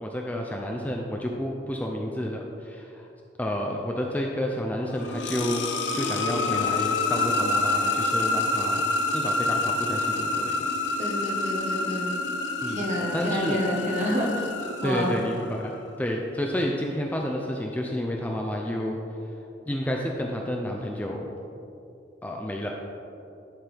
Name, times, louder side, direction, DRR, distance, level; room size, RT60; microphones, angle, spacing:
voice 1, 0.0-3.1 3.4-8.8 9.1-10.7 12.6-12.8 13.1-13.6 14.8-19.0 19.7-21.3 22.2-22.7, equal, 10° left, 0 dB, 0.4 m, -30 dB
sound 1, 4.8-15.6, left 3 dB, 70° left, 0.6 m, -27 dB
voice 2, 11.0-12.1 12.7-14.5 14.8-15.1, equal, 40° right, -2 dB, 1.2 m, -28 dB
11.0 x 4.5 x 3.4 m, 2.7 s
head